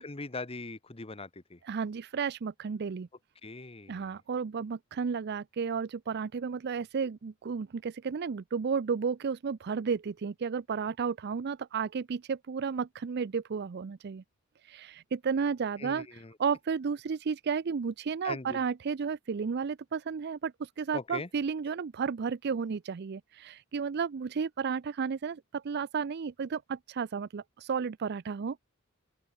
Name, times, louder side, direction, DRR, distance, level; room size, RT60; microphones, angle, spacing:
voice 1, 0.0-1.6 3.4-4.2 15.8-16.3 18.2-18.6 20.9-21.3, left 3 dB, 30° left, 1.3 m, -41 dB
voice 2, 1.6-3.1 3.9-14.2 14.6-28.6, right 6 dB, 55° right, 0.4 m, -33 dB
open air
head